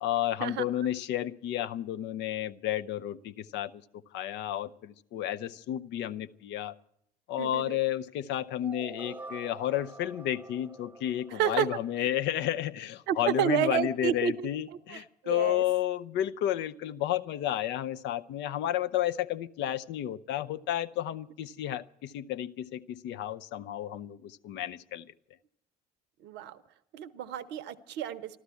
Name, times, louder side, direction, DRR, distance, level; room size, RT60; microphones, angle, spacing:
voice 1, 0.0-3.8 4.1-6.8 7.3-25.1, left 12 dB, 60° left, 12 dB, 0.6 m, -32 dB
voice 2, 7.4-7.8 11.3-11.7 13.1-14.5 14.9-15.6 26.2-26.6 26.9-28.4, right 10 dB, 60° right, 13 dB, 0.7 m, -30 dB
sound 1, 8.6-12.5, right 3 dB, 10° right, 1.0 m, -47 dB
13.5 x 12.5 x 8.3 m, 0.77 s
hypercardioid pair, 55°, 21 cm